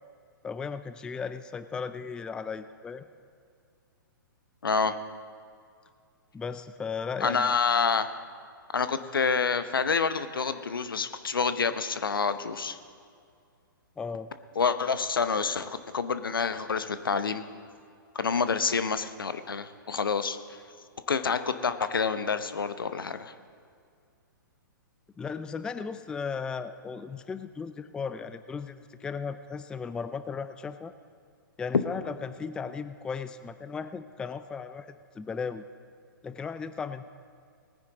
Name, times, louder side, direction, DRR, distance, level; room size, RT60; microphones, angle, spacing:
voice 1, 0.4-3.0 6.3-7.5 14.0-14.3 25.2-30.9 31.6-35.6 36.2-37.1, left 5 dB, 5° left, 11 dB, 0.3 m, -36 dB
voice 2, 4.6-5.0 7.2-8.1 8.7-12.8 14.6-17.4 18.1-20.4 21.1-23.3, left 5 dB, 80° left, 11 dB, 0.8 m, -28 dB
19.0 x 9.8 x 4.0 m, 2.2 s
figure-of-eight pair, 120°, 11 cm